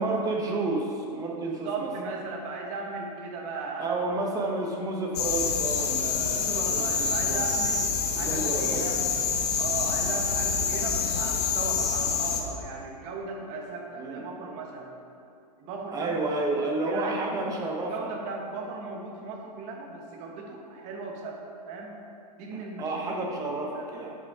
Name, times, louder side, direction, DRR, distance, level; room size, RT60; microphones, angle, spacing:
voice 1, 0.0-1.9 3.8-7.5 8.2-8.9 13.9-14.3 15.9-18.1 22.5-24.2, right 2 dB, 15° right, 0 dB, 0.9 m, -31 dB
voice 2, 1.6-3.9 4.5-4.6 6.3-7.9 8.1-9.0 9.6-14.9 15.6-16.2 16.8-17.4 17.9-21.4 21.7-21.9 22.4-23.5 23.7-23.8, right 3 dB, 35° right, 0 dB, 1.2 m, -37 dB
sound 1, 5.1-12.4, left 5 dB, 65° left, 1.1 m, -27 dB
9.7 x 5.6 x 3.6 m, 2.6 s
hypercardioid pair, 145°, 21 cm